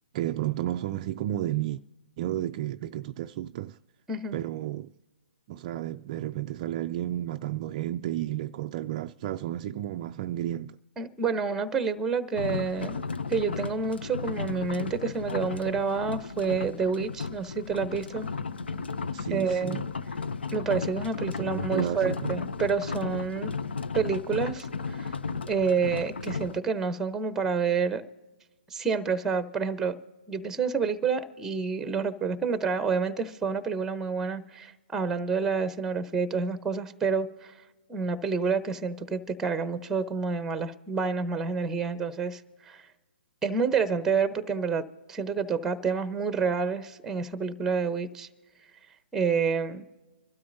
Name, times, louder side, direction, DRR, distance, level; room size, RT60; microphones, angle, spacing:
voice 1, 0.1-1.8 2.2-3.8 4.3-4.9 5.5-10.8 19.1-19.8 21.3-22.3, right 13 dB, 35° right, 0.3 m, -32 dB
voice 2, 11.0-13.0 13.3-18.3 19.3-19.8 20.5-23.5 23.9-25.1 25.5-28.0 28.7-29.9 30.3-37.5 37.9-42.4 42.7-42.8 43.4-48.3 49.1-49.8, right 5 dB, 10° right, 0.8 m, -28 dB
sound 1, 12.3-26.6, left 4 dB, 80° left, 0.6 m, -34 dB
25.5 x 12.5 x 2.7 m
hypercardioid pair, 140°, 6 cm